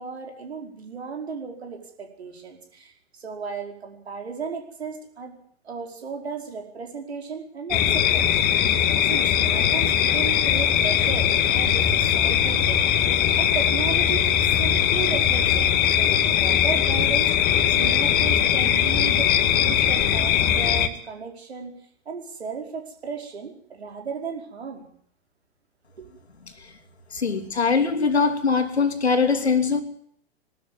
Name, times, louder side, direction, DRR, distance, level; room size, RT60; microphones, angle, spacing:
voice 1, 0.0-5.4 5.6-8.3 9.1-12.8 13.3-14.3 14.6-15.7 15.9-17.3 17.7-21.7 22.1-24.9 26.0-26.1, right 5 dB, 75° right, 3 dB, 5.1 m, -35 dB
sound 1, 7.7-20.9, left 9 dB, 30° left, 1.8 m, -20 dB
voice 2, 27.1-29.8, left 5 dB, 80° left, 6 dB, 2.9 m, -22 dB
21.0 x 13.0 x 9.3 m, 0.65 s
figure-of-eight pair, 105°, 32 cm